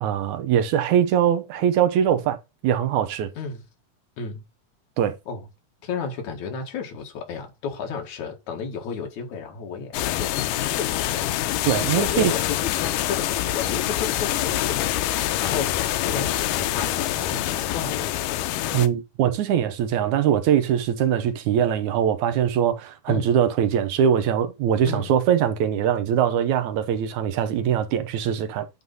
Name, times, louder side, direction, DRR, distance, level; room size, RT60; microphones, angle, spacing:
voice 1, 0.0-2.4 2.6-3.3 5.0-5.1 11.6-12.3 18.7-28.7, right 9 dB, 75° right, 2.1 m, -22 dB
voice 2, 5.8-11.3 11.9-15.1 15.4-18.1 23.1-23.3 24.9-25.1, left 6 dB, 65° left, 3.1 m, -32 dB
sound 1, 9.9-18.9, left 13 dB, 85° left, 2.3 m, -25 dB
9.6 x 3.9 x 5.3 m
omnidirectional pair, 3.7 m